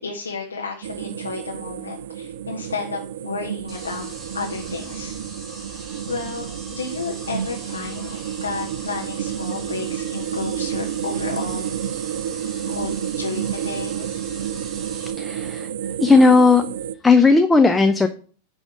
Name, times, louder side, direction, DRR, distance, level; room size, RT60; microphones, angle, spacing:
voice 1, 0.0-4.1 4.3-5.1 6.1-11.7 12.7-14.1, left 4 dB, 75° left, 0 dB, 1.3 m, -32 dB
sound 1, 0.8-16.9, right 10 dB, 60° right, 0.4 m, -30 dB
sound 2, 3.7-15.1, right 2 dB, 20° right, 2.2 m, -40 dB
voice 2, 15.1-15.7 16.0-16.6 17.0-18.1, left 3 dB, 10° left, 8 dB, 0.6 m, -15 dB
10.0 x 3.6 x 6.2 m, 0.41 s
figure-of-eight pair, 90°, 0 cm